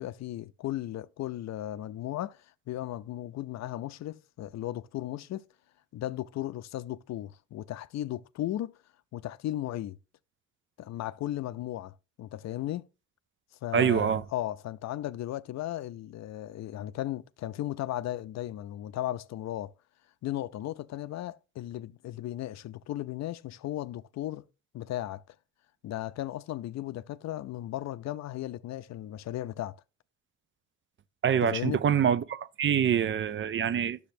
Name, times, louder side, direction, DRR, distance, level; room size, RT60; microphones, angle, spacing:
voice 1, 0.0-5.4 5.9-8.7 9.1-10.0 10.8-12.9 13.6-19.7 20.2-24.4 24.7-25.2 25.8-29.8 31.4-31.8, left 13 dB, 65° left, 0.5 m, -36 dB
voice 2, 13.7-14.2 31.2-34.0, right 8 dB, 40° right, 0.5 m, -25 dB
10.0 x 6.9 x 2.6 m
cardioid pair, 90°, 30 cm